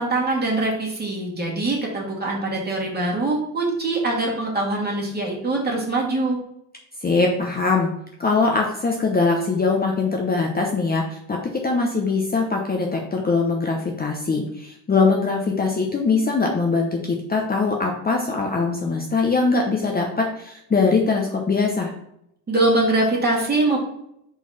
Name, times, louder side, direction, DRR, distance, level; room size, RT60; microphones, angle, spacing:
voice 1, 0.0-6.4 22.5-23.8, right 2 dB, 25° right, -2 dB, 2.2 m, -23 dB
voice 2, 7.0-7.9 8.2-11.4 11.6-21.9, left 4 dB, 20° left, 1 dB, 0.8 m, -22 dB
4.7 x 4.1 x 5.8 m, 0.77 s
cardioid pair, 115°, 41 cm